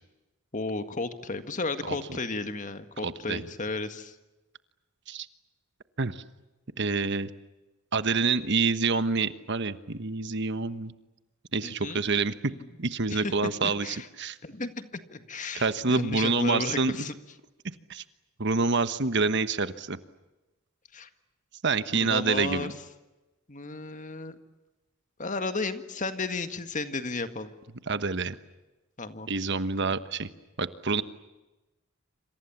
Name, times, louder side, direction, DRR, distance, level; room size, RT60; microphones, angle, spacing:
voice 1, 0.5-4.2 11.6-12.0 12.5-12.7 13.1-13.6 13.8-14.1 14.4-17.1 20.9-21.1 22.0-22.7 23.5-24.4 25.2-27.5 29.0-29.3, left 3 dB, 40° left, 9 dB, 1.8 m, -33 dB
voice 2, 3.0-3.4 5.1-5.3 6.0-6.2 6.8-7.3 7.9-10.9 11.5-12.3 12.8-14.4 15.5-17.0 17.9-18.0 18.4-20.0 21.6-22.7 27.9-28.4 29.3-30.3 30.6-31.0, right 4 dB, 55° right, 12 dB, 1.3 m, -27 dB
27.0 x 27.0 x 7.3 m, 1.1 s
head